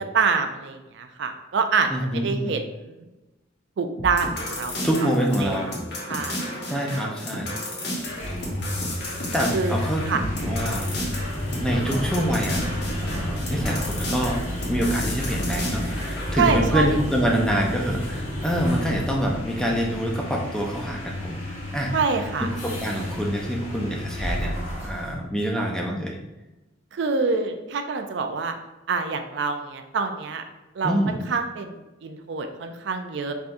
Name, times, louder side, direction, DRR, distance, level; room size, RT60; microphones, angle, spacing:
voice 1, 0.1-3.0 3.8-4.7 5.4-5.6 6.1-6.4 7.8-8.0 9.5-9.8 10.1-10.2 16.4-17.0 21.9-22.5 26.9-28.5 28.9-30.4 30.8-31.8 32.0-33.3, right 4 dB, 60° right, 6 dB, 0.4 m, -26 dB
voice 2, 1.9-2.6 4.8-5.7 6.7-7.5 9.3-10.9 11.6-12.6 13.0-14.4 14.7-21.4 21.7-21.9 22.4-26.2 30.8-31.2, equal, 5° left, -1 dB, 0.5 m, -26 dB
sound 1, 4.0-16.4, left 1 dB, 50° left, 1.0 m, -32 dB
sound 2, 8.0-25.2, left 1 dB, 90° left, 1.5 m, -31 dB
4.3 x 3.6 x 2.6 m, 1.0 s
head